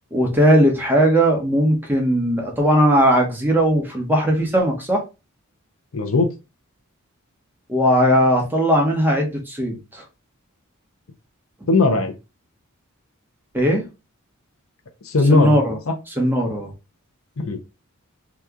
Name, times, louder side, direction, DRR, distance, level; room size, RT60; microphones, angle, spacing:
voice 1, 0.1-5.0 7.7-10.0 13.5-13.8 15.3-15.8 16.2-16.7, equal, 10° right, 0.9 m, -18 dB
voice 2, 5.9-6.3 11.7-12.1 15.1-15.6 15.9-16.0 17.4-17.6, left 3 dB, 70° left, 0.6 m, -18 dB
2.9 x 2.3 x 3.5 m
head